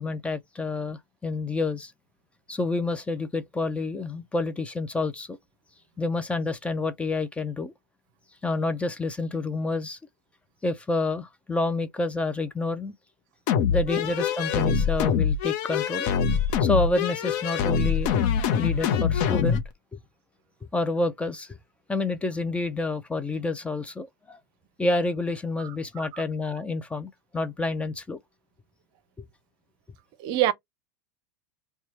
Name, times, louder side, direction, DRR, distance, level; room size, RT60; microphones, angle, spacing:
voice 1, 0.0-1.9 2.5-5.4 6.0-7.7 8.4-10.0 10.6-12.9 13.7-16.1 16.4-18.2 18.6-19.6 20.7-21.6 21.9-24.4 24.8-28.2, left 2 dB, 10° left, 0.5 m, -28 dB
sound 1, 13.5-19.6, left 7 dB, 60° left, 0.8 m, -24 dB
voice 2, 25.6-26.2 30.2-30.5, right 13 dB, 50° right, 0.6 m, -27 dB
2.9 x 2.3 x 4.1 m
hypercardioid pair, 105°, 10 cm